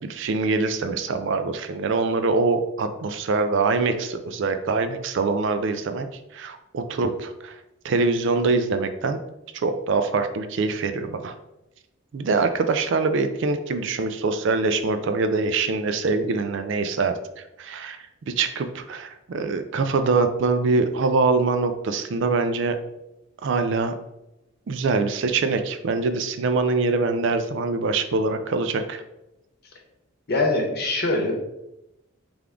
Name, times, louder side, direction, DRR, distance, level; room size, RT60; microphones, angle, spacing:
voice 1, 0.0-6.1 6.3-7.5 7.8-9.2 9.6-11.3 12.1-17.2 17.6-22.8 23.4-23.9 24.7-29.0, right 4 dB, 55° right, 9 dB, 0.3 m, -24 dB
voice 2, 30.3-31.3, left 2 dB, 45° left, 1 dB, 0.9 m, -23 dB
3.5 x 3.4 x 3.6 m, 0.91 s
head